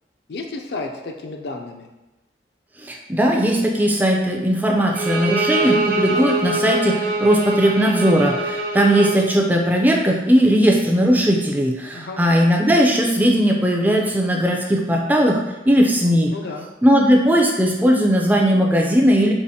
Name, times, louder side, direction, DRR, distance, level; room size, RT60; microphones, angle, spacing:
voice 1, 0.3-1.9 11.9-12.2 16.3-16.7, left 3 dB, 65° left, 3 dB, 0.4 m, -32 dB
voice 2, 2.8-16.3 16.8-19.3, equal, 10° right, 0 dB, 0.3 m, -18 dB
Bowed string instrument, 4.9-9.2, right 3 dB, 50° right, 0.6 m, -23 dB
4.8 x 2.5 x 2.7 m, 1.0 s
head